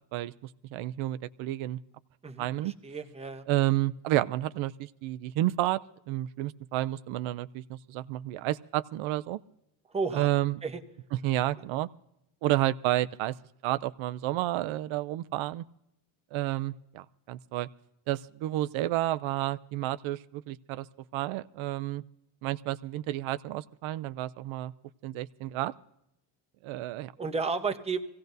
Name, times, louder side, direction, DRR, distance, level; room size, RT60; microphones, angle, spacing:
voice 1, 0.0-1.8 2.4-2.7 3.5-5.8 6.1-9.4 10.1-10.6 11.1-11.9 12.4-13.4 13.6-15.6 16.3-17.7 18.1-20.9 21.1-22.0 22.4-24.7 25.0-25.7 26.6-27.1, right 15 dB, 80° right, 14 dB, 0.6 m, -30 dB
voice 2, 2.2-3.5 9.9-10.3 10.6-10.8 27.2-28.0, right 4 dB, 15° right, 5 dB, 0.9 m, -32 dB
25.0 x 16.5 x 2.6 m, 0.83 s
cardioid pair, 155°, 48 cm